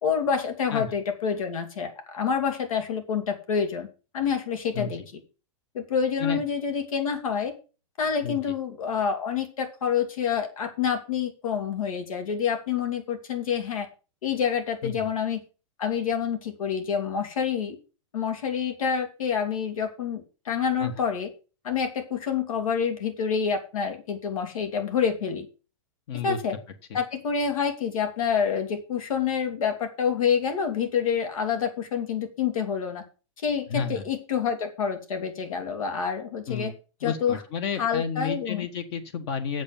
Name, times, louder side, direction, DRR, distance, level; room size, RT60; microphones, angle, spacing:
voice 1, 0.0-3.9 4.1-5.0 5.7-7.5 8.0-13.9 14.2-15.4 15.8-17.8 18.1-21.3 21.6-25.5 26.2-26.5 26.9-33.0 33.4-36.7 37.0-37.4 37.8-38.7, left 7 dB, 85° left, 7 dB, 3.0 m, -27 dB
voice 2, 4.7-5.1 6.2-6.4 8.2-8.4 14.8-15.1 20.8-20.9 26.1-26.4 26.9-27.0 33.7-34.0 36.5-36.7 37.0-39.6, left 6 dB, 50° left, 8 dB, 1.5 m, -31 dB
8.2 x 7.3 x 7.1 m, 0.33 s
hypercardioid pair, 150°, 17 cm